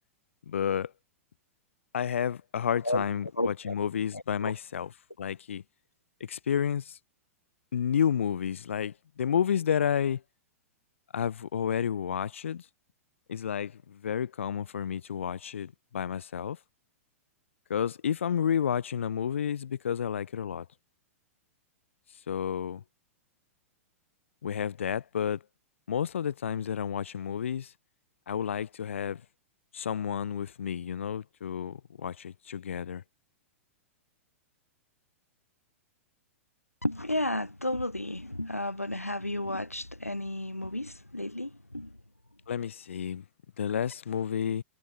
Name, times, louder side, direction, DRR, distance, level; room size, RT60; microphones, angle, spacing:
voice 1, 0.5-0.9 1.9-4.9 5.2-5.6 6.2-7.0 7.7-10.2 11.1-12.6 13.3-16.6 17.7-20.6 22.3-22.8 24.4-25.4 25.9-27.7 28.3-29.2 29.7-33.0 42.5-43.2 43.6-44.6, left 8 dB, 60° left, 6.3 m, -31 dB
voice 2, 3.4-3.8 4.1-4.5 36.8-41.9, left 1 dB, 90° left, 1.2 m, -32 dB
figure-of-eight pair, 105°, 8 cm